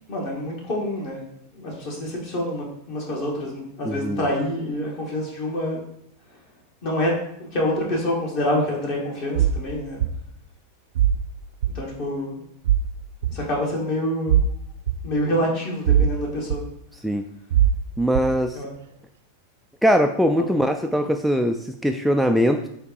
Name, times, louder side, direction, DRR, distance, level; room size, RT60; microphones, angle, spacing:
voice 1, 0.1-1.2 1.5-5.8 6.8-7.1 7.5-10.0 11.7-12.4 13.3-14.4 15.0-16.6 18.5-18.7 20.4-20.5, left 1 dB, 45° left, -2 dB, 2.1 m, -26 dB
voice 2, 3.8-4.2 17.0-17.2 18.0-18.6 19.8-22.7, equal, ahead, 5 dB, 0.3 m, -21 dB
sound 1, 9.4-9.6 10.0-10.1 11.0-11.2 11.6-11.7 12.6-12.9 13.2-13.3 14.3-14.5 14.9-15.0 15.9-16.1 16.5-16.6 17.5-17.8 18.1-18.3, right 9 dB, 60° right, 0.5 m, -19 dB
7.7 x 2.9 x 4.7 m, 0.74 s
figure-of-eight pair, 90°, 0 cm